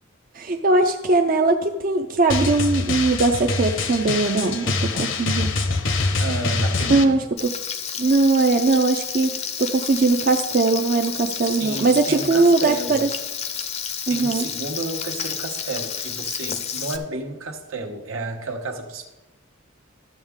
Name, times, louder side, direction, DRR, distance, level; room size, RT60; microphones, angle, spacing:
voice 1, 0.3-5.5 5.9-6.0 6.9-7.5 8.0-13.1 14.1-14.5, right 3 dB, 45° right, 3 dB, 0.5 m, -20 dB
Drum, 2.3-7.0, left 3 dB, 60° left, 0.8 m, -24 dB
voice 2, 6.2-7.2 11.4-13.0 14.1-19.1, right 3 dB, 80° right, 4 dB, 1.1 m, -31 dB
Frying (food), 7.4-17.0, left 7 dB, 30° left, 0.5 m, -31 dB
13.0 x 7.1 x 3.6 m, 1.1 s
head